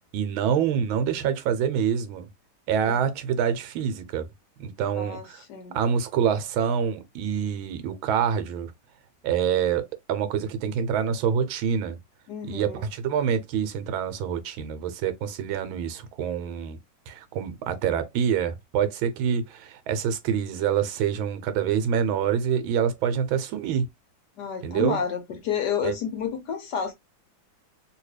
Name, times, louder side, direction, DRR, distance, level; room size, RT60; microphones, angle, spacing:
voice 1, 0.1-2.3 2.7-4.3 4.6-5.4 5.7-8.7 9.2-12.0 12.4-16.8 17.1-23.9 24.6-25.0 25.8-25.9, right 8 dB, 80° right, 1.5 m, -26 dB
voice 2, 5.0-5.8 12.3-12.8 24.4-26.9, left 7 dB, 70° left, 1.1 m, -30 dB
3.0 x 2.8 x 3.1 m
omnidirectional pair, 2.2 m